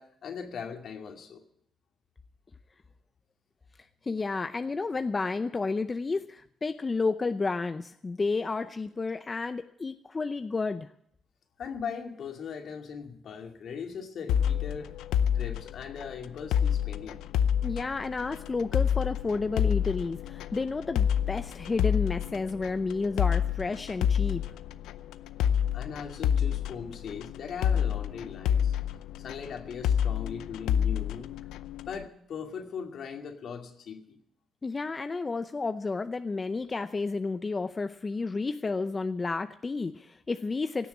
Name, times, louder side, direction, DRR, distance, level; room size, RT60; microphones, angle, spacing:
voice 1, 0.0-1.4 11.6-15.0 15.3-17.2 25.7-28.7 29.2-31.3 31.9-34.2, left 6 dB, 65° left, 3 dB, 2.3 m, -39 dB
voice 2, 4.0-10.9 17.6-24.4 34.6-40.9, left 3 dB, 30° left, 10 dB, 0.6 m, -31 dB
sound 1, 14.3-32.0, left 9 dB, 90° left, 0.5 m, -29 dB
17.0 x 7.0 x 9.5 m, 0.72 s
cardioid pair, 75°, 0 cm